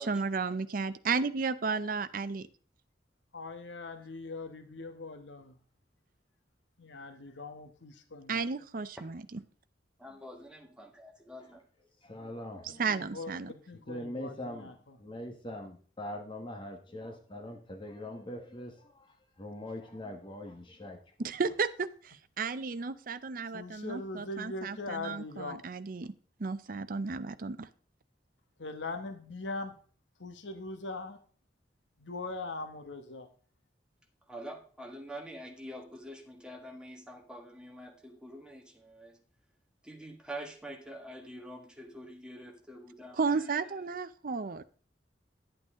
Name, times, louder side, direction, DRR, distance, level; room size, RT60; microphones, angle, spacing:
voice 1, 0.0-2.5 8.3-9.4 12.8-13.5 21.2-26.1 26.4-27.7 43.2-44.6, right 4 dB, 50° right, 12 dB, 0.6 m, -33 dB
voice 2, 3.3-5.5 6.8-8.4 12.9-14.7 23.5-25.6 28.6-29.7 30.2-31.2 32.0-33.3, left 3 dB, 90° left, 7 dB, 1.2 m, -41 dB
voice 3, 10.0-11.6 34.3-39.2 39.8-43.9, right 1 dB, 5° right, 2 dB, 1.6 m, -46 dB
voice 4, 12.0-12.8 13.7-21.3, left 1 dB, 30° left, 3 dB, 1.4 m, -42 dB
10.5 x 8.7 x 3.7 m, 0.42 s
head